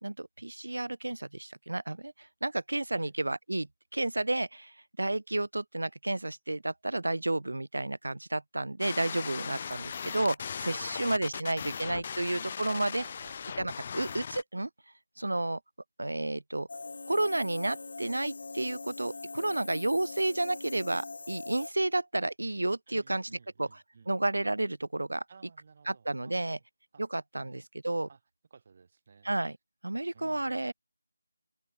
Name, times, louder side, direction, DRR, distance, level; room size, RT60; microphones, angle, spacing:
voice 1, 0.0-3.7 3.9-13.0 13.6-14.7 15.2-15.6 16.0-16.7 17.1-23.3 23.6-25.2 25.9-26.6 27.0-28.1 29.2-29.6 29.8-30.7, right 2 dB, 90° right, 2.6 m, -31 dB
sound 1, 8.8-14.4, left 6 dB, 25° left, 2.0 m, -38 dB
voice 2, 10.7-12.2 12.6-13.4 19.4-19.7 22.9-24.1 25.3-26.6 26.9-27.0 27.4-27.6 28.1-28.2 28.5-29.3 30.1-30.6, right 5 dB, 30° right, 6.1 m, -56 dB
sound 2, 16.7-21.7, left 3 dB, 50° left, 3.8 m, -42 dB
open air
figure-of-eight pair, 175°, 0 cm